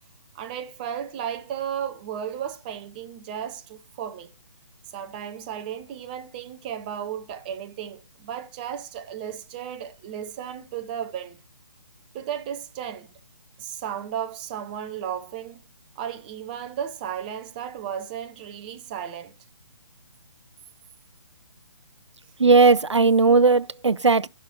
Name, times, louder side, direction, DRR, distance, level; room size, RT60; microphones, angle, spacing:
voice 1, 0.3-4.3 4.9-11.4 12.1-13.1 13.6-15.6 16.0-19.3, right 9 dB, 20° right, 0.7 m, -34 dB
voice 2, 22.4-24.3, right 4 dB, 85° right, 0.4 m, -17 dB
16.5 x 5.7 x 2.8 m
figure-of-eight pair, 140°, 15 cm